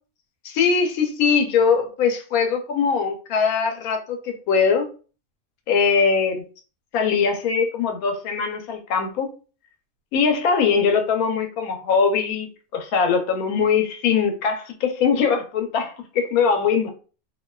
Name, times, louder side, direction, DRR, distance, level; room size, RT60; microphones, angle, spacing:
voice 1, 0.4-4.9 5.7-6.4 6.9-9.3 10.1-16.9, left 6 dB, 85° left, 1.0 m, -21 dB
2.6 x 2.2 x 2.2 m
omnidirectional pair, 1.5 m